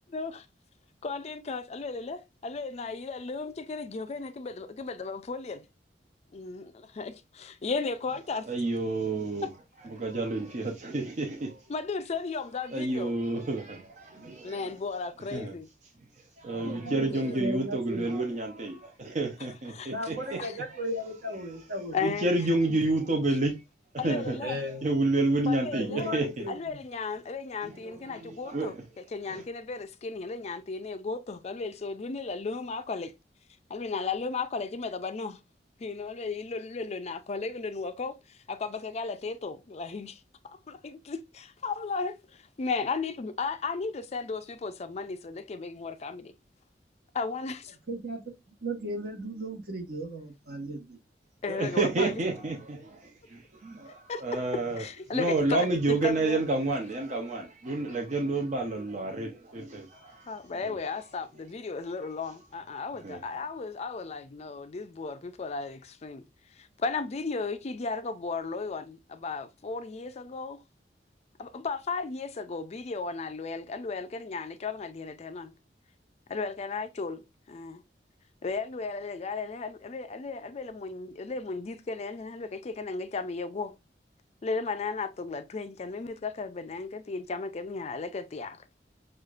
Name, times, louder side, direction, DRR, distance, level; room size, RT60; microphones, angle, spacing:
voice 1, 0.1-0.4 1.0-5.6 6.3-8.5 11.7-13.2 14.4-15.7 17.1-17.4 19.7-19.9 20.4-20.6 21.9-22.3 24.0-24.6 25.5-26.2 26.5-28.7 29.1-33.1 33.7-35.4 35.8-46.3 47.1-47.8 51.4-52.1 53.9-54.2 54.8-56.4 60.3-66.3 66.6-70.6 71.4-75.5 76.3-77.8 78.4-83.7 84.4-88.7, left 4 dB, 40° left, 0.4 m, -35 dB
voice 2, 8.5-9.5 9.8-11.7 12.7-14.7 15.2-15.6 16.2-20.8 21.5-21.6 22.0-23.6 23.9-24.4 24.7-26.5 27.6-28.8 29.3-29.4 51.5-54.9 55.1-60.3 60.6-60.8 63.0-63.2, right 2 dB, 45° right, 0.6 m, -30 dB
voice 3, 16.6-18.1 19.9-22.0 24.4-24.9 25.7-26.8 47.9-48.2 48.6-51.0, equal, 65° right, 1.3 m, -36 dB
6.3 x 2.4 x 2.4 m
head